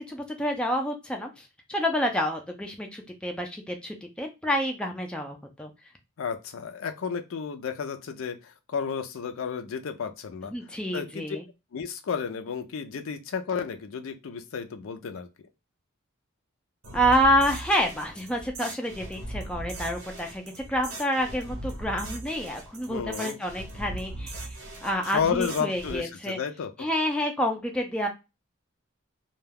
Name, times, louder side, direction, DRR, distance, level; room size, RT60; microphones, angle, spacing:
voice 1, 0.0-5.7 10.5-11.4 16.9-20.4 20.7-24.3 24.8-26.4 26.8-28.1, equal, 5° left, 2 dB, 0.3 m, -28 dB
voice 2, 6.2-10.5 10.9-11.4 11.7-15.5 22.9-23.4 25.0-26.7, left 6 dB, 75° left, 8 dB, 0.4 m, -32 dB
sound 1, 16.8-26.0, right 1 dB, 80° right, 0.7 m, -39 dB
2.3 x 2.2 x 3.2 m, 0.25 s
head